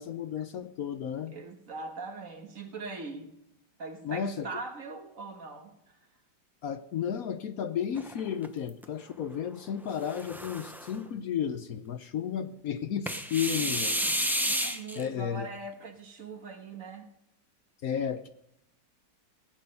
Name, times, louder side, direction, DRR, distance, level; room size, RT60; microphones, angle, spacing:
voice 1, 0.0-1.3 4.0-4.5 6.6-14.0 15.0-15.5 17.8-18.3, left 8 dB, 65° left, 1.1 m, -33 dB
voice 2, 1.3-3.4 3.8-6.0 14.6-17.1, right 3 dB, 50° right, 1.9 m, -41 dB
sound 1, 8.0-8.8 9.9-11.0 13.1-15.0, equal, ahead, 0.6 m, -31 dB
17.5 x 9.2 x 5.4 m
omnidirectional pair, 1.8 m